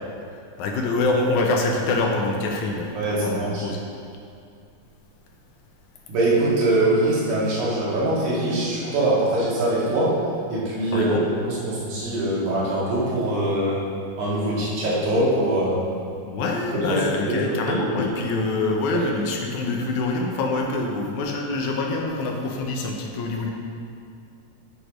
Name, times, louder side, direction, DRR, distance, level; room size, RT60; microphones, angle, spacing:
voice 1, 0.3-3.8 10.9-11.3 16.2-23.5, left 3 dB, 80° left, 1 dB, 2.2 m, -25 dB
voice 2, 2.9-3.7 6.1-10.2 10.5-13.8 14.2-15.9 16.9-18.0 18.9-19.0, right 1 dB, 80° right, -7 dB, 3.3 m, -23 dB
8.3 x 5.0 x 5.0 m, 2.5 s
omnidirectional pair, 3.5 m